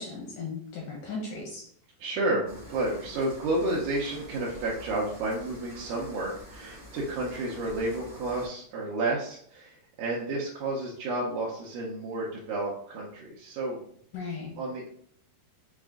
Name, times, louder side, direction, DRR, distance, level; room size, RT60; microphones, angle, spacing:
voice 1, 0.0-1.7 14.1-14.5, left 4 dB, 75° left, -2 dB, 1.9 m, -37 dB
voice 2, 2.0-13.8 14.6-14.9, right 2 dB, 80° right, -4 dB, 1.8 m, -31 dB
sound 1, 2.5-8.5, equal, 45° right, 0.8 m, -47 dB
5.9 x 2.4 x 3.6 m, 0.63 s
omnidirectional pair, 4.5 m